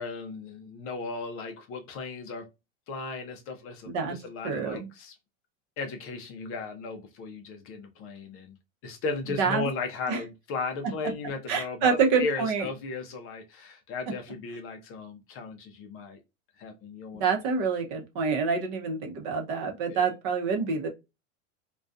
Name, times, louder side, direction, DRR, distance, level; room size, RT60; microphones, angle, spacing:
voice 1, 0.0-2.5 2.9-5.2 5.8-8.6 8.8-16.2 16.6-17.2 19.9-20.1, left 4 dB, 35° left, 0.4 m, -36 dB
voice 2, 4.4-4.9 9.4-9.7 10.1-10.2 11.5-12.6 17.1-20.9, right 5 dB, 45° right, 0.7 m, -27 dB
2.4 x 2.2 x 2.4 m
supercardioid pair, 125°, 39 cm